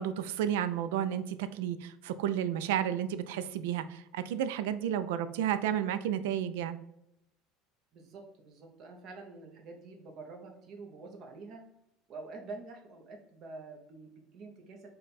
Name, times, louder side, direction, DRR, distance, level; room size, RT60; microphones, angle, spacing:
voice 1, 0.0-6.8, right 10 dB, 85° right, 12 dB, 0.3 m, -32 dB
voice 2, 7.9-11.6 12.1-14.9, right 3 dB, 35° right, 2 dB, 0.7 m, -47 dB
5.1 x 2.2 x 4.0 m, 0.79 s
cardioid pair, 175°, 0 cm